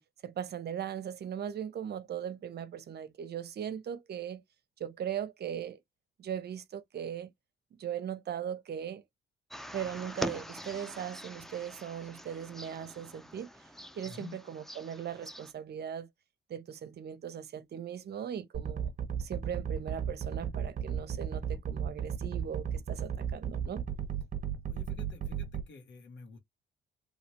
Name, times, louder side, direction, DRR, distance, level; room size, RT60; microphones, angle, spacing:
voice 1, 0.0-4.4 4.8-5.8 6.2-7.3 7.8-9.0 9.7-13.5 13.9-16.1 16.5-18.9 19.2-23.8, right 9 dB, 55° right, 0.7 m, -39 dB
sound 1, 9.5-15.5, equal, ahead, 0.4 m, -43 dB
voice 2, 14.0-14.4 24.7-26.4, left 4 dB, 65° left, 1.4 m, -49 dB
sound 2, 18.5-25.6, right 8 dB, 40° right, 1.2 m, -34 dB
3.2 x 2.8 x 2.9 m
cardioid pair, 90°, 20 cm